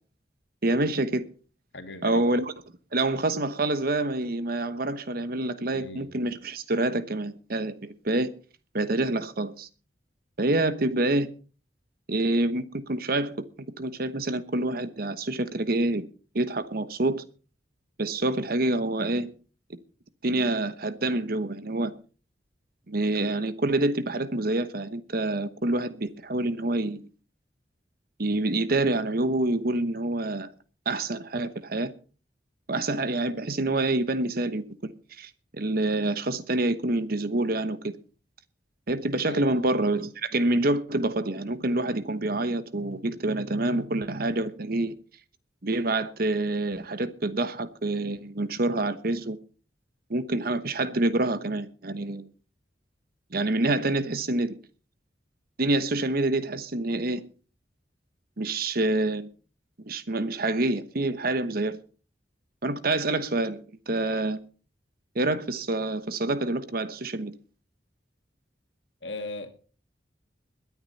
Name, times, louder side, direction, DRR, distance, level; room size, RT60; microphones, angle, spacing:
voice 1, 0.6-1.3 2.0-2.5 2.9-8.3 8.7-9.7 10.4-11.3 12.1-13.4 13.8-16.0 16.3-17.2 18.0-19.3 20.2-21.9 22.9-27.0 28.2-30.5 30.8-31.9 32.7-37.9 38.9-45.0 45.6-49.4 50.1-52.3 53.3-54.6 55.6-57.2 58.4-59.3 59.8-61.8 62.6-63.6 63.9-64.4 65.1-67.3, right 2 dB, 55° right, 1.1 m, -27 dB
voice 2, 1.7-2.3 5.7-6.1 39.3-39.6 69.0-69.5, left 2 dB, 85° left, 2.3 m, -38 dB
21.5 x 9.9 x 4.2 m
head